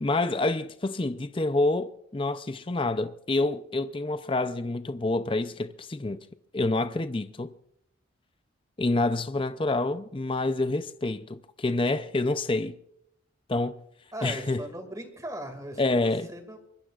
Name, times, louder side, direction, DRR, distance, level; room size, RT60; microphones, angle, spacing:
voice 1, 0.0-6.3 6.5-7.5 8.8-12.8 13.5-13.8 14.2-14.6 15.8-16.3, left 2 dB, 25° left, 0.5 m, -27 dB
voice 2, 14.1-16.7, right 1 dB, 15° right, 2.2 m, -39 dB
24.0 x 21.0 x 2.5 m
head